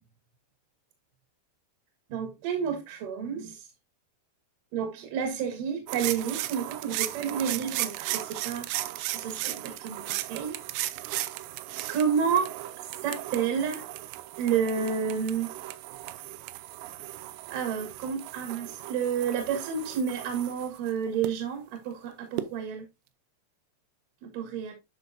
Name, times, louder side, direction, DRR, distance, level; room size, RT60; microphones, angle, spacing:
voice 1, 2.1-3.7 4.7-8.7 9.1-10.6 11.9-12.5 13.0-13.8 14.4-15.5 17.5-22.9 24.2-24.7, right 7 dB, 60° right, 2.8 m, -30 dB
sound 1, 5.9-21.3 22.4-22.5, right 16 dB, 85° right, 2.8 m, -36 dB
9.9 x 6.0 x 2.6 m
omnidirectional pair, 4.9 m